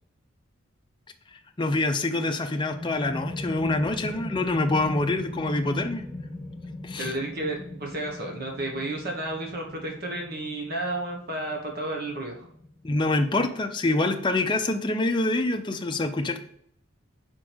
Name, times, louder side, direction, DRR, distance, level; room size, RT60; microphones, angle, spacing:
voice 1, 1.6-6.0 6.8-7.1 12.8-16.4, left 2 dB, 25° left, 4 dB, 0.6 m, -26 dB
sound 1, 2.3-13.7, left 1 dB, ahead, 1.3 m, -39 dB
voice 2, 7.0-12.5, right 2 dB, 50° right, 0 dB, 1.3 m, -32 dB
4.9 x 4.5 x 6.1 m, 0.68 s
head